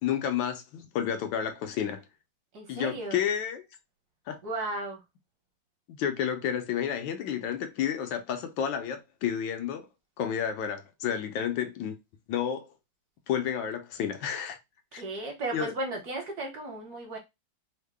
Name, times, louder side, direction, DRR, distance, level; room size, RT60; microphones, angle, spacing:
voice 1, 0.0-2.0 2.7-3.7 4.3-4.4 5.9-9.9 10.2-12.0 12.3-12.7 13.3-14.6 14.9-15.0 15.5-15.7, left 9 dB, 80° left, 1.4 m, -31 dB
voice 2, 2.5-3.2 4.4-5.0 14.9-17.2, right 2 dB, 60° right, 1.4 m, -35 dB
3.6 x 2.1 x 3.4 m
omnidirectional pair, 2.1 m